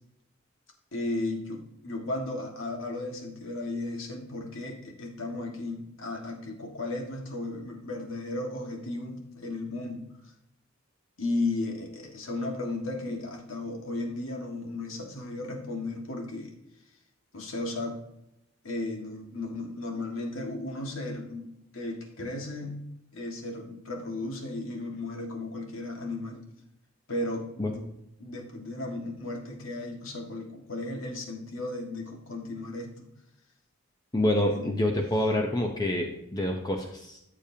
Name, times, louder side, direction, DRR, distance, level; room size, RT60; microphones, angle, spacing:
voice 1, 0.9-10.0 11.2-16.5 17.3-18.0 18.6-21.5 21.7-22.8 23.1-26.4 27.1-27.8 28.2-33.1 34.5-34.7, left 2 dB, 90° left, 1 dB, 1.8 m, -35 dB
voice 2, 34.1-37.2, left 1 dB, 20° left, 2 dB, 0.7 m, -27 dB
14.0 x 6.7 x 2.8 m, 0.82 s
head